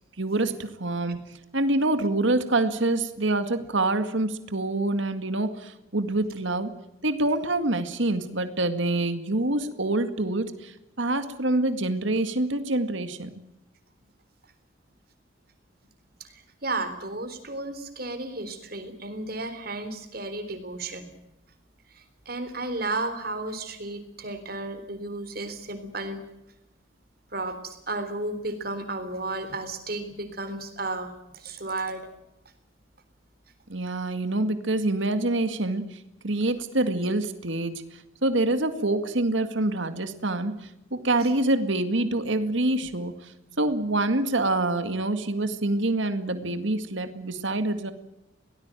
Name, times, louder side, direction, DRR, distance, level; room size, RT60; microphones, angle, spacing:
voice 1, 0.2-1.2 1.5-6.7 7.0-13.3 33.7-37.8 38.2-43.3 43.6-47.9, right 2 dB, 70° right, 9 dB, 2.0 m, -26 dB
voice 2, 16.2-21.0 21.9-26.2 27.3-32.1, right 2 dB, 50° right, 9 dB, 3.7 m, -33 dB
23.5 x 18.5 x 9.1 m, 0.88 s
head